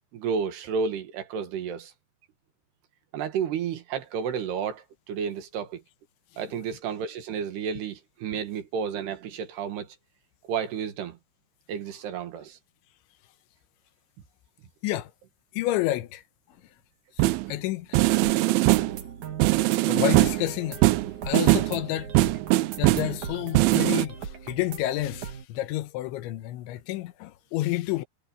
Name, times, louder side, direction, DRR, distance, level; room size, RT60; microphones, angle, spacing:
voice 1, 0.1-1.9 3.1-5.8 6.4-9.9 10.5-11.2 11.7-12.6, right 6 dB, 65° right, 3.6 m, -31 dB
voice 2, 15.5-16.7 17.1-18.0 19.8-20.9 21.2-22.2 22.8-28.0, left 15 dB, 80° left, 3.3 m, -30 dB
sound 1, 17.2-17.5 17.9-19.0 19.4-20.5 20.8-21.8 22.2-23.2 23.6-24.1, right 19 dB, 90° right, 3.3 m, -21 dB
sound 2, 18.0-25.4, right 7 dB, 50° right, 3.0 m, -39 dB
omnidirectional pair, 5.3 m